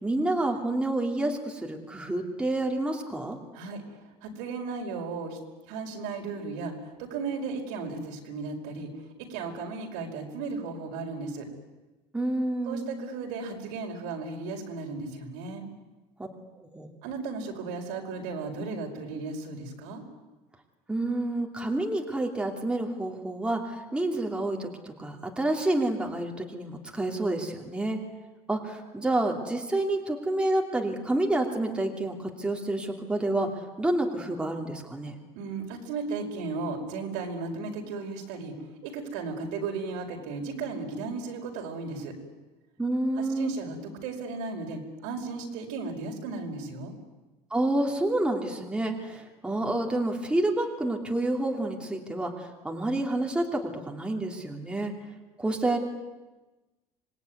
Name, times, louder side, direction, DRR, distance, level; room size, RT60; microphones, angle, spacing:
voice 1, 0.0-3.4 12.1-12.9 16.7-16.9 20.9-28.0 28.5-33.5 33.8-35.2 42.8-43.5 47.5-54.9 55.4-55.8, right 1 dB, 5° right, 1 dB, 2.9 m, -29 dB
voice 2, 3.5-5.4 5.7-6.7 7.0-8.9 9.3-11.5 12.7-15.6 17.0-20.0 35.4-38.5 38.8-42.1 43.2-46.9, right 4 dB, 85° right, 2 dB, 5.3 m, -35 dB
26.0 x 20.0 x 9.6 m, 1.2 s
cardioid pair, 135°, 13 cm